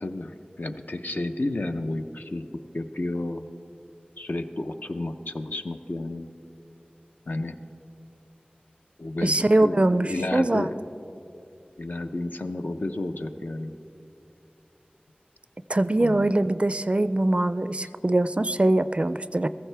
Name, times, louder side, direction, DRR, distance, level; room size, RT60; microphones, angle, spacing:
voice 1, 0.0-2.5 2.7-3.5 4.2-6.3 7.3-7.6 9.0-10.8 11.8-13.7 16.0-16.3, left 2 dB, 65° left, 6 dB, 0.6 m, -31 dB
voice 2, 9.2-10.7 15.7-19.5, right 1 dB, 35° right, 13 dB, 0.3 m, -22 dB
16.5 x 14.5 x 3.4 m, 2.8 s
wide cardioid pair, 45°, 3 cm